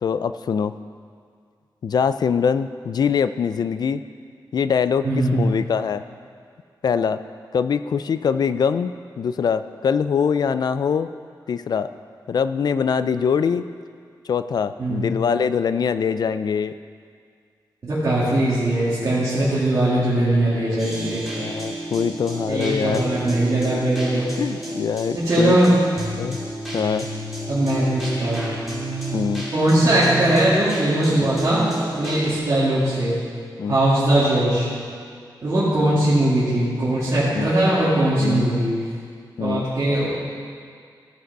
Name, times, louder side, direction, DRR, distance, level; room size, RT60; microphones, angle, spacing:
voice 1, 0.0-0.7 1.8-4.0 4.5-5.1 5.3-6.0 6.8-7.2 7.5-11.1 11.5-11.9 12.3-13.7 14.3-16.7 20.7-20.9 21.3-23.1 23.6-23.8 24.4-25.7 26.2-26.4 26.7-27.1 29.1-29.5 31.2-31.3 32.0-32.2 33.6-33.8 37.3-37.5 38.2-38.5 39.4-39.7, left 6 dB, 60° left, 12 dB, 0.3 m, -23 dB
voice 2, 5.0-5.5 14.8-15.1 17.8-21.2 22.5-24.3 25.1-25.8 27.5-28.5 29.5-33.2 33.7-34.7 35.4-38.7 39.4-40.1, right 1 dB, 45° right, -11 dB, 2.2 m, -20 dB
sound 1, 20.8-32.4, right 1 dB, ahead, 2.6 m, -31 dB
14.0 x 6.6 x 4.6 m, 2.1 s
wide cardioid pair, 175°, 8 cm